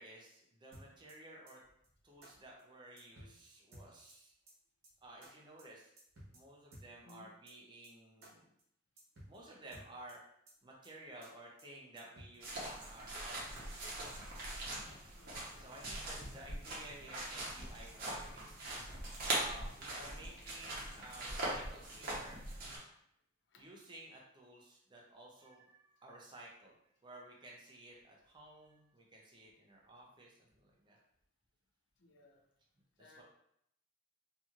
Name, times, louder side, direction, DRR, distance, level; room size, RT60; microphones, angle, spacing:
voice 1, 0.0-1.6 2.0-4.3 5.0-5.9 6.3-8.5 9.3-10.2 10.6-13.7 14.3-14.5 15.6-18.6 19.2-22.5 23.6-26.7 27.0-31.0 33.0-33.2, right 2 dB, 25° right, -2 dB, 0.5 m, -54 dB
sound 1, 0.7-1.1 1.5-1.6 1.8-1.9 2.2-2.3 2.6-2.7 3.0-3.4 3.7-4.1 4.5-4.6 4.8-4.9 5.2-5.3 5.6-5.7 6.0-6.4 6.7-7.1 7.5-7.6 7.8-7.9 8.2-8.3 8.6-8.7 9.0-9.4 9.7-10.1 10.5-10.6 10.8-10.9 11.2-11.3 11.6-11.7 12.0-12.4, right 1 dB, 80° right, 0.9 m, -55 dB
voice 2, 7.0-7.3 15.1-15.5 23.5-23.7 32.0-32.4 33.0-33.2, left 2 dB, 60° left, 3 dB, 0.5 m, -60 dB
sound 2, 12.4-22.8, right 1 dB, 50° right, 0.8 m, -42 dB
2.9 x 2.6 x 2.3 m, 0.73 s
head